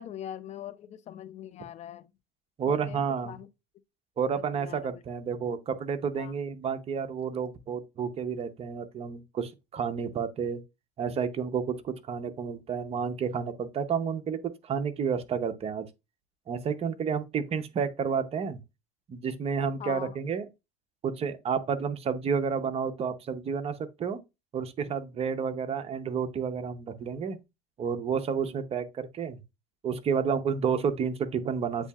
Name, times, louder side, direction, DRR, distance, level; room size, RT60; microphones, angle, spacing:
voice 1, 0.0-2.1 2.6-3.5 4.4-5.0 6.2-6.3 19.8-20.2, left 10 dB, 40° left, 0.5 m, -42 dB
voice 2, 2.6-3.3 4.2-10.6 11.0-15.9 16.5-18.6 19.1-20.5 21.0-24.2 24.5-27.4 27.8-29.4 29.8-31.9, right 6 dB, 35° right, 0.7 m, -30 dB
8.0 x 2.7 x 2.3 m
supercardioid pair, 110°, 18 cm